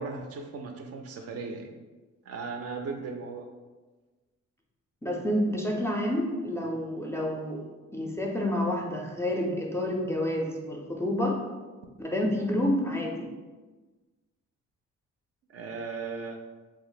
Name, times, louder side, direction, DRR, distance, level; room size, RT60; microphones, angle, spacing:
voice 1, 0.0-1.7 2.3-3.5 15.5-16.4, right 4 dB, 55° right, 4 dB, 0.4 m, -37 dB
voice 2, 5.0-7.6 7.9-11.4 12.0-13.3, left 1 dB, 10° left, 0 dB, 0.4 m, -29 dB
2.5 x 2.0 x 3.8 m, 1.3 s
cardioid pair, 90°, 30 cm